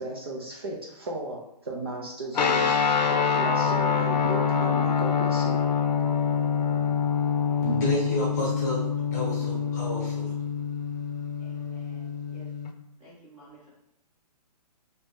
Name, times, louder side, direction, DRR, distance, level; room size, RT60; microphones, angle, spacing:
voice 1, 0.0-2.8 3.1-5.6, right 2 dB, 35° right, -2 dB, 0.4 m, -35 dB
sound 1, 2.3-12.7, left 6 dB, 75° left, 0.6 m, -26 dB
voice 2, 7.6-10.3, left 1 dB, 25° left, -4 dB, 0.9 m, -30 dB
voice 3, 11.4-12.5 13.0-13.7, right 1 dB, 10° right, -8 dB, 0.9 m, -53 dB
3.1 x 2.7 x 3.5 m, 0.80 s
hypercardioid pair, 175°, 21 cm